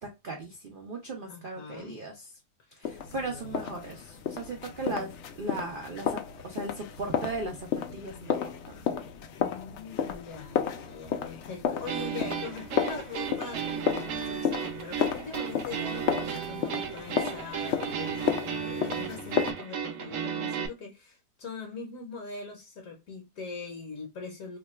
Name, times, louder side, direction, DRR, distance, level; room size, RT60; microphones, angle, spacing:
voice 1, 0.0-2.1 2.8-9.0, right 2 dB, 85° right, 0.4 m, -38 dB
voice 2, 1.2-2.0 2.6-3.7 6.7-6.8 9.4-24.6, left 4 dB, 65° left, 1.0 m, -42 dB
sound 1, 2.8-19.5, left 8 dB, 90° left, 0.6 m, -33 dB
sound 2, 11.9-20.7, right 7 dB, 70° right, 0.8 m, -34 dB
2.9 x 2.2 x 4.2 m
omnidirectional pair, 1.8 m